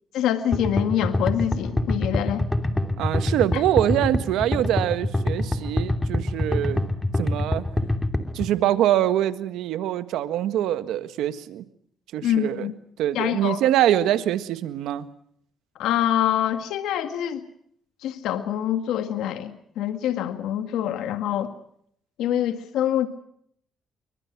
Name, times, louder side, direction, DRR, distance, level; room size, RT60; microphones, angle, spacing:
voice 1, 0.1-2.4 12.2-12.7 13.2-13.6 15.8-17.4 18.0-21.5 22.2-23.1, left 11 dB, 90° left, 8 dB, 1.8 m, -25 dB
sound 1, 0.5-8.5, left 1 dB, 15° left, 2.8 m, -25 dB
voice 2, 3.0-6.8 7.2-7.6 8.3-11.6 12.1-12.7 13.0-15.1, right 12 dB, 90° right, 11 dB, 1.6 m, -24 dB
27.0 x 23.5 x 6.0 m, 0.67 s
cardioid pair, 90°, 0 cm